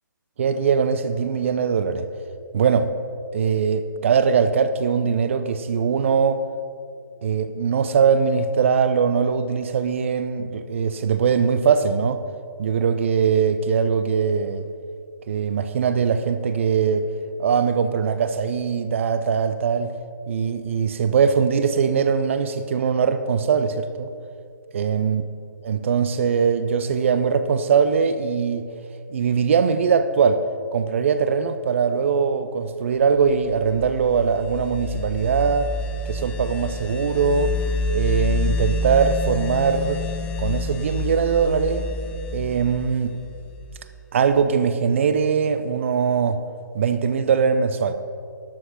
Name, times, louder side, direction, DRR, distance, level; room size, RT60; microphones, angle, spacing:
voice 1, 0.4-2.1 2.5-2.9 3.3-6.4 7.2-12.2 12.6-14.6 15.3-17.1 17.4-19.9 20.3-24.1 24.7-25.2 25.6-28.6 29.1-30.5 30.7-35.7 36.1-37.5 37.9-40.0 40.4-41.8 42.3-43.1 44.1-46.4 46.7-47.9, right 6 dB, 40° right, 0.6 m, -21 dB
sound 1, 33.4-44.0, left 2 dB, 10° left, 0.5 m, -28 dB
12.0 x 7.9 x 5.8 m
figure-of-eight pair, 135°, 11 cm